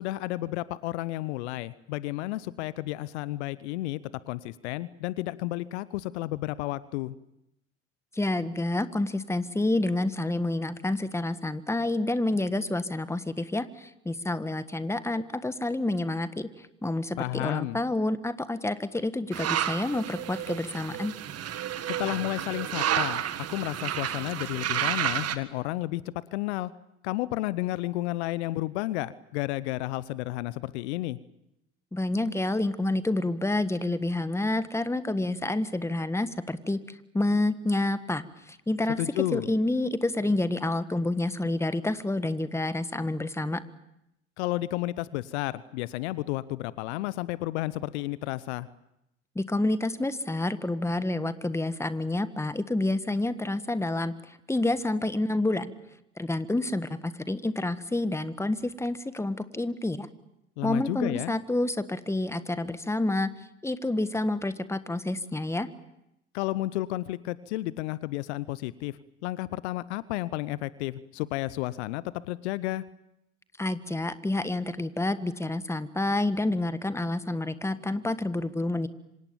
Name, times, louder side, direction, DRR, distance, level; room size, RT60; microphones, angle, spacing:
voice 1, 0.0-4.0 4.3-7.2 17.2-17.8 21.9-26.7 27.0-31.2 39.0-39.5 44.4-48.7 60.6-61.3 66.3-72.9, left 17 dB, 65° left, 19 dB, 0.9 m, -32 dB
voice 2, 8.1-21.1 31.9-36.8 37.1-43.6 49.3-55.7 56.2-60.1 60.6-63.3 63.6-65.7 73.6-78.9, left 2 dB, 5° left, 13 dB, 1.6 m, -28 dB
sound 1, 19.3-25.4, right 10 dB, 45° right, 1.8 m, -31 dB
27.5 x 25.5 x 7.2 m, 0.83 s
figure-of-eight pair, 60°, 36 cm